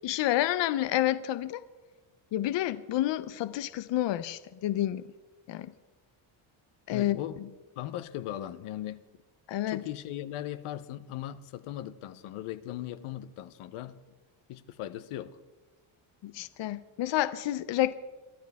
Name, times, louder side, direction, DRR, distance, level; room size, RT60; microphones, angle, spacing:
voice 1, 0.0-1.6 2.3-5.0 5.5-5.7 6.9-7.2 9.5-9.8 16.2-17.9, left 14 dB, 60° left, 0.6 m, -29 dB
voice 2, 6.9-9.0 9.7-14.0 14.5-15.4, left 12 dB, 80° left, 0.9 m, -38 dB
23.0 x 13.5 x 3.5 m
cardioid pair, 120°, 50 cm